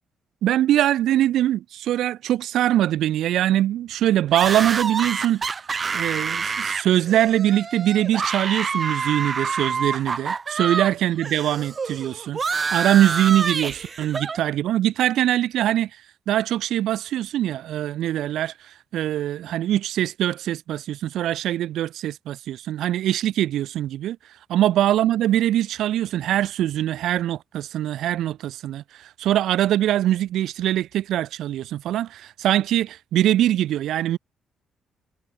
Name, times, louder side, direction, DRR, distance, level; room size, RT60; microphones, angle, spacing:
voice 1, 0.4-5.4 5.9-15.9 16.3-24.2 24.5-34.2, right 12 dB, 80° right, 3.2 m, -22 dB
sound 1, 4.3-10.9 11.2-14.4, right 5 dB, 40° right, 4.1 m, -27 dB
cardioid pair, 90°, 0 cm